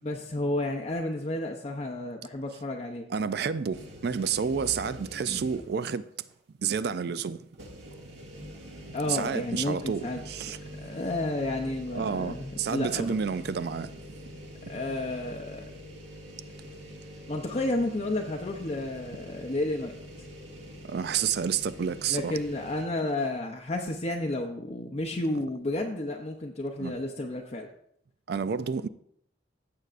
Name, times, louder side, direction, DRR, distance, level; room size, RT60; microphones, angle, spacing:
voice 1, 0.0-3.1 5.3-5.4 8.9-10.2 10.8-13.1 14.7-15.6 17.3-19.9 22.1-27.7, left 2 dB, 35° left, 0.6 m, -31 dB
voice 2, 3.1-6.1 6.6-7.5 8.9-10.6 11.9-14.0 20.8-22.3 26.8-26.9 28.3-28.9, right 6 dB, 60° right, 0.4 m, -30 dB
sound 1, 3.7-5.9 6.3-6.4 7.5-22.8, equal, 75° right, 2.0 m, -45 dB
15.5 x 6.7 x 2.5 m
head